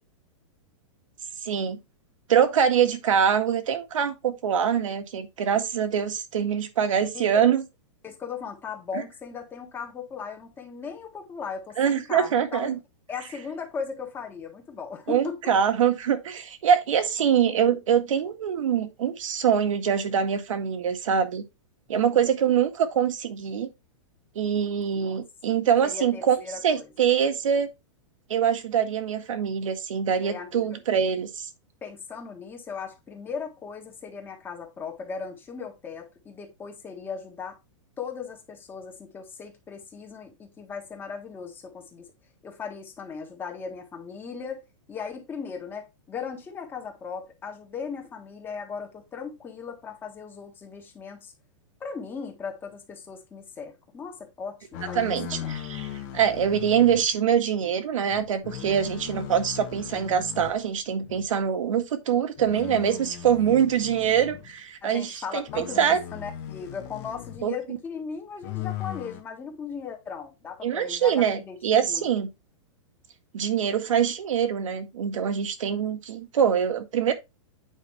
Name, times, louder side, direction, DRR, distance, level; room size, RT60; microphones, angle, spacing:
voice 1, 1.4-1.8 2.3-7.6 8.9-9.0 11.8-12.8 15.1-21.4 21.9-23.7 24.4-26.4 26.6-27.7 28.3-31.5 55.0-66.0 67.4-67.6 70.6-72.3 73.3-77.1, right 8 dB, 80° right, 1.8 m, -24 dB
voice 2, 7.1-7.6 8.0-12.8 13.1-15.5 25.0-25.2 25.8-26.9 30.2-30.8 31.8-37.6 38.0-42.1 42.4-44.6 44.9-51.3 51.8-55.5 64.8-72.1, left 6 dB, 10° left, 1.5 m, -38 dB
sound 1, 54.7-57.1 58.1-60.6 61.0-61.3 62.4-64.5 65.5-67.5 68.4-69.2, left 11 dB, 35° left, 1.3 m, -38 dB
9.2 x 5.2 x 3.2 m
hypercardioid pair, 165°, 16 cm